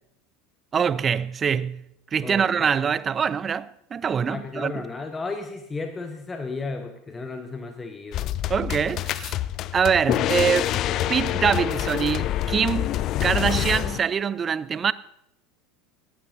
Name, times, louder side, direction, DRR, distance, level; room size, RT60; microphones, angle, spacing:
voice 1, 0.7-1.8 2.1-4.8 8.5-9.4 9.7-10.7 11.1-12.9 13.2-14.9, right 7 dB, 25° right, 0.4 m, -24 dB
voice 2, 2.2-2.8 4.2-8.4, left 3 dB, 15° left, 1.0 m, -34 dB
sound 1, 8.1-14.0, left 13 dB, 40° left, 0.4 m, -26 dB
18.5 x 14.5 x 2.7 m
figure-of-eight pair, 75°, 0 cm